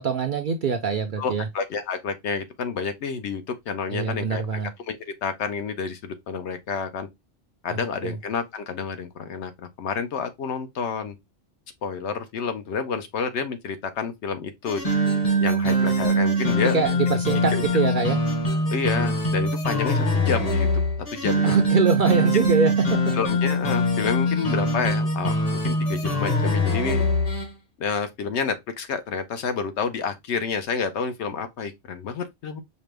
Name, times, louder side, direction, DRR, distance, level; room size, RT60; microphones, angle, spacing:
voice 1, 0.0-1.4 3.9-4.7 8.0-8.1 16.7-18.2 21.4-23.1, right 5 dB, 60° right, 0.5 m, -24 dB
voice 2, 1.2-4.4 4.9-7.1 7.6-11.1 11.8-14.8 15.4-16.8 17.5-17.6 18.7-20.8 21.1-21.6 22.3-22.4 23.1-27.1 27.8-32.6, left 5 dB, 70° left, 0.9 m, -29 dB
sound 1, 14.7-27.5, equal, 35° left, 0.8 m, -23 dB
5.1 x 2.0 x 3.2 m
omnidirectional pair, 1.2 m